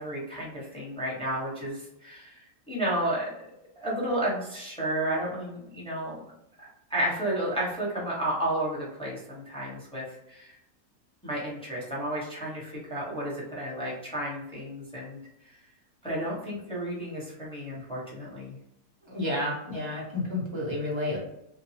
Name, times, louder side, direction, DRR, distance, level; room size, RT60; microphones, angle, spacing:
voice 1, 0.0-2.4 2.7-3.3 3.8-6.2 6.9-10.6 11.2-15.2 16.0-18.6, right 1 dB, 5° left, -6 dB, 0.7 m, -32 dB
voice 2, 19.1-21.2, left 1 dB, 35° right, -3 dB, 0.4 m, -30 dB
2.8 x 2.2 x 2.7 m, 0.81 s
omnidirectional pair, 1.6 m